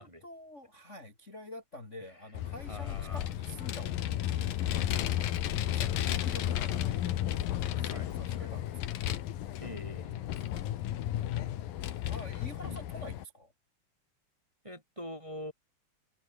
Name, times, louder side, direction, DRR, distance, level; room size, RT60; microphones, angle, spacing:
voice 1, 0.0-7.0 7.3-9.1 12.1-13.5, left 1 dB, 20° left, 3.2 m, -48 dB
Vehicle, 2.4-13.2, left 12 dB, 90° left, 3.3 m, -33 dB
voice 2, 2.7-3.3 5.8-6.3 7.8-8.5 9.6-10.3 12.6-12.8 14.6-15.5, equal, 10° right, 3.9 m, -45 dB
omnidirectional pair, 3.9 m